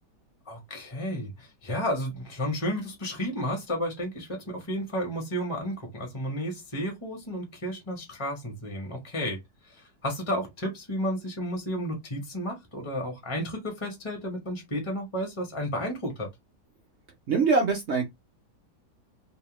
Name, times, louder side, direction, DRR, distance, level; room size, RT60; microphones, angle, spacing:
voice 1, 0.5-9.4 9.7-16.3, equal, 25° left, 0.7 m, -32 dB
voice 2, 17.3-18.1, right 4 dB, 60° right, 0.7 m, -23 dB
2.9 x 2.1 x 3.0 m
omnidirectional pair, 1.8 m